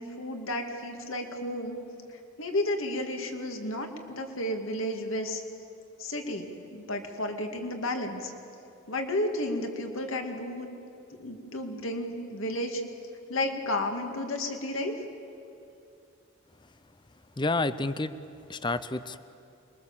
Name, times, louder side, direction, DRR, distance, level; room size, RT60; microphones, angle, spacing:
voice 1, 0.0-1.8 2.4-5.4 6.0-8.3 8.9-10.7 11.2-12.8 13.3-14.9, left 1 dB, 65° left, 4 dB, 2.3 m, -32 dB
voice 2, 17.4-18.1 18.5-19.2, left 2 dB, 20° left, 13 dB, 0.6 m, -29 dB
26.5 x 22.5 x 7.4 m, 2.6 s
head